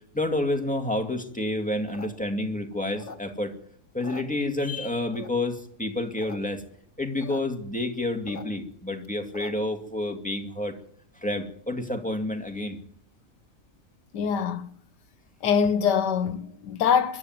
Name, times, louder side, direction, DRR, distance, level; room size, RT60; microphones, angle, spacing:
voice 1, 0.1-3.5 3.9-6.6 7.0-10.7 11.2-12.8, left 1 dB, 5° left, 2.2 m, -29 dB
sound 1, 1.7-3.6 3.9-4.8 5.1-5.6 6.0-6.4 6.6-6.7 6.9-7.4 7.8-9.8, left 4 dB, 45° left, 2.2 m, -43 dB
voice 2, 14.1-14.7 15.4-17.2, left 7 dB, 85° left, 1.6 m, -24 dB
22.0 x 12.5 x 9.5 m
omnidirectional pair, 1.8 m